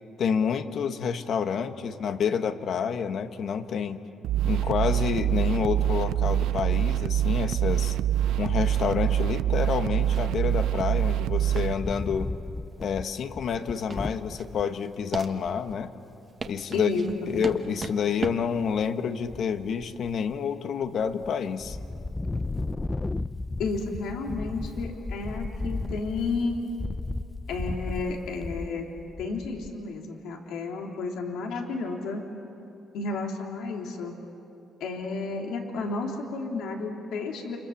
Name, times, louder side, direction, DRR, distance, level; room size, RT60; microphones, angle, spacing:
voice 1, 0.2-4.0 4.4-8.0 8.4-12.3 12.8-15.9 16.4-16.9 17.3-21.8, left 7 dB, 65° left, 8 dB, 1.4 m, -28 dB
sound 1, 4.2-11.7, right 11 dB, 85° right, 0.5 m, -25 dB
sound 2, 10.0-22.6, right 4 dB, 40° right, 1.4 m, -41 dB
Wind, 11.7-14.6 15.2-15.3 15.4-15.8 17.3-17.9 18.4-18.9 19.2-20.4 20.8-21.3 21.6-29.8, left 2 dB, 20° left, 0.7 m, -35 dB
voice 2, 16.7-17.1 17.3-17.4 23.6-26.6 27.5-28.9 29.2-32.2 32.9-34.1 34.8-37.6, left 3 dB, 85° left, 1 dB, 3.3 m, -32 dB
29.0 x 26.5 x 7.3 m, 2.9 s
cardioid pair, 90°, 0 cm